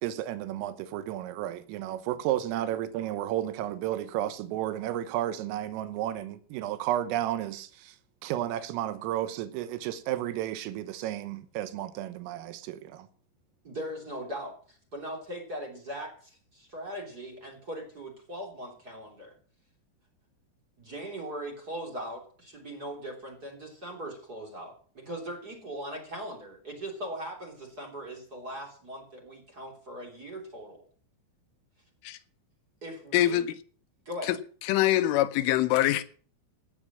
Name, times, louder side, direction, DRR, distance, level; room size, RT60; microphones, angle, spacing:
voice 1, 0.0-8.0 8.2-13.1, right 12 dB, 90° right, 3.6 m, -32 dB
voice 2, 13.6-19.3 20.8-30.8 32.8-33.5 34.0-34.3, equal, 25° right, 2.8 m, -40 dB
voice 3, 33.1-33.5 34.3-34.4 34.7-36.0, left 14 dB, 80° left, 3.3 m, -24 dB
17.5 x 7.3 x 7.4 m
omnidirectional pair, 5.8 m